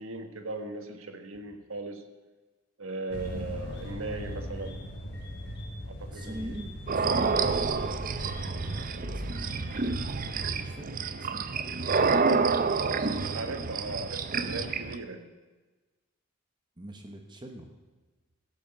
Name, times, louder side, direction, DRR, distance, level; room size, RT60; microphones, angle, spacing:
voice 1, 0.0-2.0 2.8-4.8 5.8-6.5 13.3-15.3, right 2 dB, 70° right, 6 dB, 1.3 m, -38 dB
sound 1, 3.1-10.6, equal, 55° left, 2.2 m, -40 dB
voice 2, 6.1-9.7 10.5-11.9 16.8-17.7, right 1 dB, 20° right, 4 dB, 1.0 m, -43 dB
sound 2, 6.9-15.0, right 4 dB, 40° right, 0.5 m, -28 dB
15.0 x 6.0 x 7.6 m, 1.2 s
head